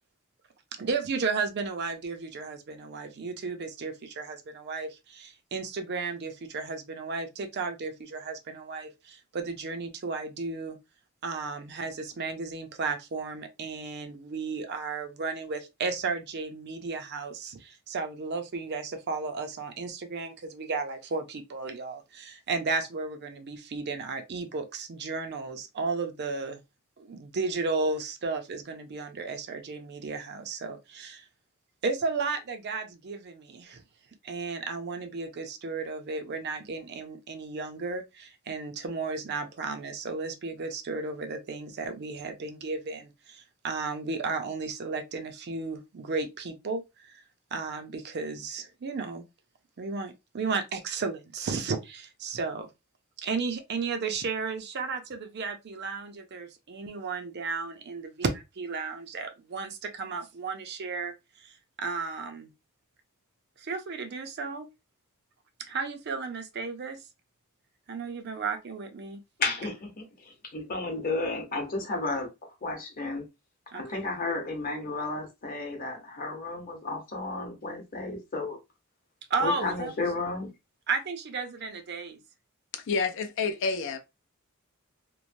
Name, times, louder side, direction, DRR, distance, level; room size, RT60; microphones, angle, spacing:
voice 1, 0.8-10.8 11.2-26.6 27.0-31.2 31.8-33.8 34.2-47.2 47.5-49.2 49.8-52.7 53.2-61.1 61.4-62.5 63.6-64.7 65.7-67.0 67.9-69.2 73.7-74.0 79.3-79.9 80.9-82.2, right 4 dB, 50° right, 0.5 m, -34 dB
voice 2, 69.4-72.3 72.6-73.2 73.7-78.6 79.4-80.5, left 3 dB, 40° left, 0.9 m, -33 dB
voice 3, 82.7-84.0, left 4 dB, 60° left, 0.4 m, -29 dB
3.0 x 2.1 x 2.5 m
head